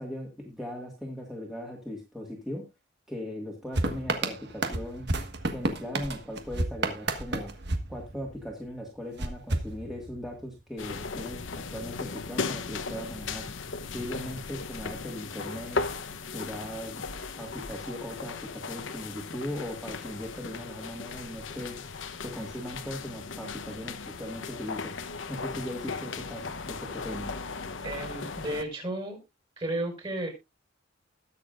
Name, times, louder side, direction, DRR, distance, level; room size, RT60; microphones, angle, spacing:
voice 1, 0.0-2.6 3.1-5.1 5.5-7.5 7.9-13.5 13.9-15.9 16.3-17.1 17.4-21.8 22.2-25.0 25.3-27.3, left 1 dB, ahead, -2 dB, 1.9 m, -38 dB
sound 1, 3.7-8.6 9.2-10.4, right 2 dB, 60° right, 1.5 m, -31 dB
sound 2, 10.8-28.6, left 4 dB, 70° left, 0.9 m, -37 dB
voice 2, 27.8-29.2 29.6-30.3, right 1 dB, 30° right, 4 dB, 5.5 m, -33 dB
20.5 x 6.9 x 2.5 m, 0.24 s
head